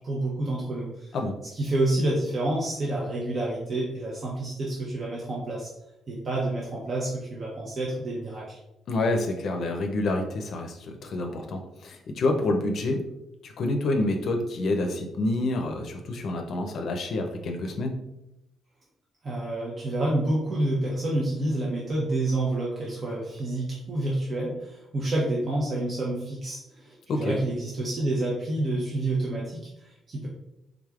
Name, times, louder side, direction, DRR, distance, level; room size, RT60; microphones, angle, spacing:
voice 1, 0.0-1.1 1.5-5.7 6.1-8.6 19.2-30.3, right 1 dB, 45° right, -5 dB, 0.8 m, -28 dB
voice 2, 8.9-13.0 13.4-17.9 27.1-27.3, left 2 dB, 65° left, 4 dB, 0.5 m, -28 dB
3.5 x 3.3 x 2.4 m, 0.87 s
cardioid pair, 90°, 0 cm